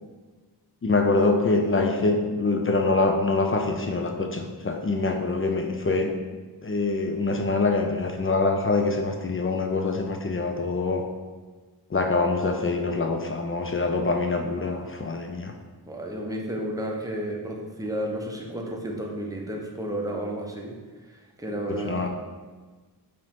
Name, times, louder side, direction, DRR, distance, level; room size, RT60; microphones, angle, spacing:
voice 1, 0.8-6.1 6.6-11.0 11.9-15.5 21.7-22.1, left 3 dB, 35° left, 4 dB, 0.4 m, -25 dB
voice 2, 15.9-20.7 21.1-22.1, right 1 dB, 10° right, -1 dB, 0.6 m, -32 dB
4.7 x 3.0 x 3.5 m, 1.3 s
wide cardioid pair, 90°, 41 cm